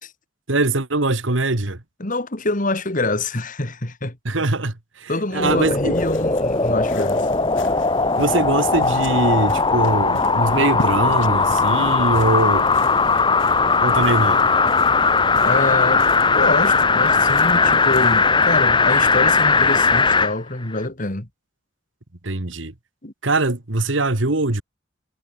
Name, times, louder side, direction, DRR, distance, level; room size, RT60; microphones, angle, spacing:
voice 1, 0.5-1.8 4.3-5.9 8.2-12.7 13.8-14.5 22.2-22.7 23.2-24.6, right 2 dB, 80° right, 2.0 m, -22 dB
voice 2, 2.0-4.2 5.1-7.3 15.4-16.1 16.3-21.3 23.0-23.1, left 2 dB, 45° left, 2.5 m, -25 dB
sound 1, 5.3-20.3 20.8-20.9, left 4 dB, 25° left, 2.8 m, -18 dB
sound 2, 5.9-18.7, left 2 dB, 80° left, 6.9 m, -40 dB
head